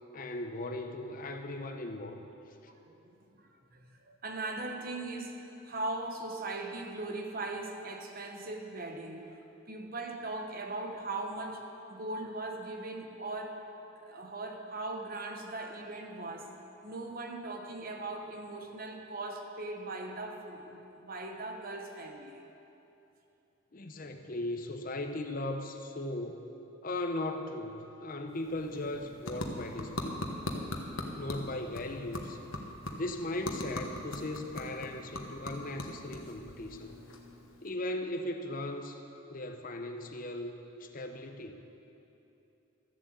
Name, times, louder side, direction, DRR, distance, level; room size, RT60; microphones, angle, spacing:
voice 1, 0.1-2.3 23.7-26.5 26.8-30.2 31.2-32.4 32.9-37.0 37.6-39.0 39.3-40.5 40.8-41.6, left 1 dB, 40° left, 6 dB, 0.7 m, -38 dB
voice 2, 2.9-9.4 9.7-13.6 14.0-16.5 16.8-22.4, right 2 dB, 45° right, 3 dB, 1.2 m, -39 dB
sound 1, 28.3-37.7, left 1 dB, 80° left, 1.3 m, -41 dB
13.5 x 7.6 x 8.1 m, 2.9 s
head